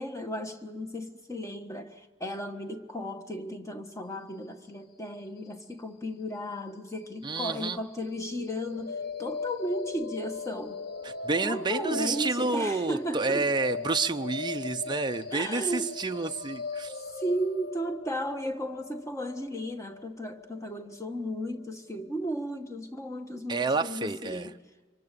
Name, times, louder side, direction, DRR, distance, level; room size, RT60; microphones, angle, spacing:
voice 1, 0.0-10.8 11.4-13.5 15.3-16.0 17.1-24.5, equal, 15° left, 1.4 m, -35 dB
voice 2, 7.2-7.8 11.0-16.9 23.5-24.5, right 3 dB, 25° right, 0.6 m, -29 dB
sound 1, 8.1-22.1, left 4 dB, 55° left, 1.3 m, -39 dB
25.5 x 23.5 x 6.8 m
head